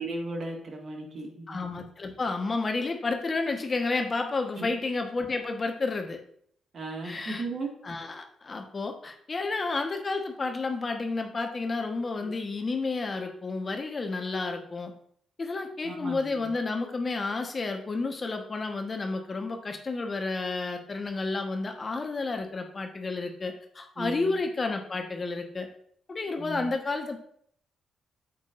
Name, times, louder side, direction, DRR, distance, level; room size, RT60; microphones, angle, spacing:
voice 1, 0.0-1.6 4.6-4.7 6.7-7.7 12.2-12.3 15.8-16.5 24.0-24.4 26.4-26.7, right 2 dB, 55° right, 2 dB, 1.8 m, -36 dB
voice 2, 1.5-6.2 7.0-7.4 7.8-14.9 15.4-25.7 26.1-27.2, left 3 dB, 40° left, 5 dB, 1.2 m, -31 dB
9.2 x 7.3 x 2.5 m, 0.64 s
hypercardioid pair, 45°, 0 cm